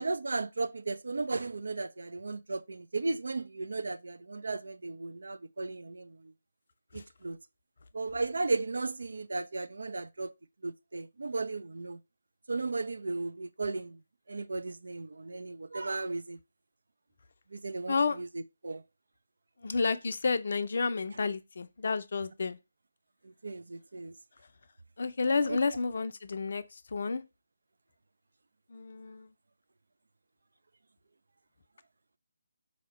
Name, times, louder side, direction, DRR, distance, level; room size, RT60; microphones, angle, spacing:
voice 1, 0.0-6.2 6.9-7.4 7.9-10.3 10.6-12.0 12.5-14.0 14.3-16.4 17.5-18.3 18.6-18.8 23.2-24.1 25.5-25.6, right 3 dB, 65° right, 0.4 m, -35 dB
voice 2, 17.9-18.2 19.6-22.6 25.0-27.2 28.7-29.3, left 4 dB, 55° left, 0.4 m, -31 dB
4.1 x 2.8 x 4.1 m
figure-of-eight pair, 150°, 0 cm